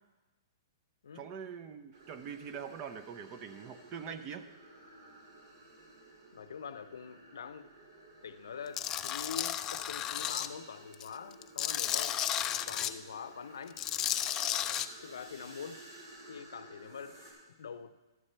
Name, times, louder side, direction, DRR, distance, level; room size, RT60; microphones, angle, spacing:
voice 1, 1.1-4.5, right 7 dB, 30° right, 9 dB, 0.6 m, -43 dB
sound 1, 1.9-17.3, right 2 dB, 60° right, 3.7 m, -55 dB
voice 2, 6.3-7.7 8.2-12.2 12.7-13.8 15.0-15.8 16.3-17.2 17.6-18.0, left 6 dB, 85° left, 13 dB, 0.6 m, -44 dB
Tools, 8.8-10.5 10.9-12.9 13.7-14.9, left 11 dB, 20° left, 0.3 m, -33 dB
13.0 x 4.3 x 6.6 m, 1.1 s
hypercardioid pair, 145°, 2 cm